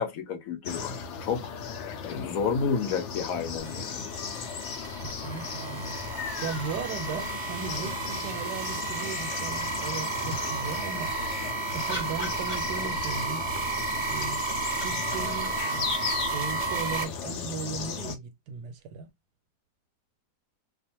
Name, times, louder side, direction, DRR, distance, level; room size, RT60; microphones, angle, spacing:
voice 1, 0.0-1.5 2.0-4.1, left 6 dB, 70° left, 0.9 m, -30 dB
sound 1, 0.6-18.1, left 6 dB, 85° left, 0.6 m, -36 dB
sound 2, 3.6-17.0, right 4 dB, 50° right, 0.5 m, -33 dB
voice 2, 5.0-11.1 11.7-13.5 14.1-16.0 16.3-19.1, right 5 dB, 90° right, 1.2 m, -37 dB
sound 3, 9.0-9.9 11.4-13.2 14.3-16.9 18.9-19.0, left 1 dB, 35° left, 0.6 m, -42 dB
2.5 x 2.4 x 2.8 m
omnidirectional pair, 1.8 m